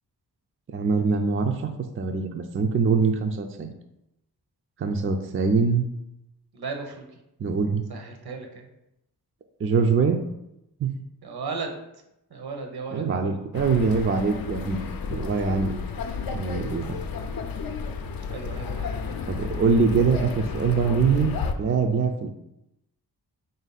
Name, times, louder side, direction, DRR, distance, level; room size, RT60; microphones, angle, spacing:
voice 1, 0.7-1.7 2.0-3.7 4.8-5.9 7.4-7.8 9.6-10.2 10.8-10.9 12.9-14.8 15.1-15.7 16.3-17.0 19.3-21.3 21.6-22.3, right 5 dB, 35° right, 5 dB, 0.4 m, -23 dB
voice 2, 6.5-7.1 7.9-8.7 11.2-11.7 12.3-13.4 18.3-19.0, right 4 dB, 65° right, 3 dB, 0.9 m, -35 dB
sound 1, 13.5-21.5, left 5 dB, 60° left, 0.5 m, -32 dB
3.6 x 2.6 x 4.0 m, 0.86 s
cardioid pair, 50°, 41 cm